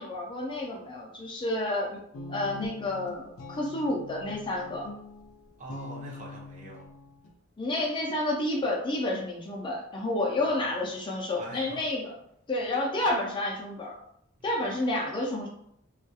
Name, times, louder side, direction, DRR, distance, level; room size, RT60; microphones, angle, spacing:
voice 1, 0.0-2.0 2.3-4.9 7.6-12.1 12.5-14.0 14.4-15.5, left 1 dB, 25° left, -2 dB, 0.4 m, -30 dB
Guitar, 2.1-7.3, left 3 dB, 85° left, 0.4 m, -43 dB
voice 2, 5.6-6.8 10.4-10.8 11.4-11.8 14.4-14.6, right 2 dB, 40° right, -3 dB, 0.7 m, -44 dB
2.3 x 2.2 x 2.6 m, 0.72 s
head